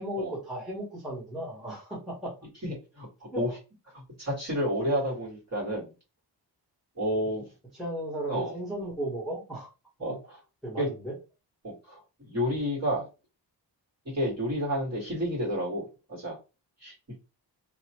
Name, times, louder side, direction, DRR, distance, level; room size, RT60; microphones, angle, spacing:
voice 1, 0.0-2.3 3.3-3.4 7.8-9.7 10.0-10.2 10.6-11.2, right 1 dB, ahead, -7 dB, 1.0 m, -35 dB
voice 2, 2.6-3.1 3.3-3.6 3.9-5.9 6.9-7.5 8.3-8.5 10.0-10.4 10.8-10.9 11.6-12.0 12.3-13.0 14.1-16.4 16.8-16.9, equal, 40° right, -4 dB, 1.7 m, -30 dB
2.8 x 2.2 x 2.8 m, 0.29 s
wide cardioid pair, 135°, 43 cm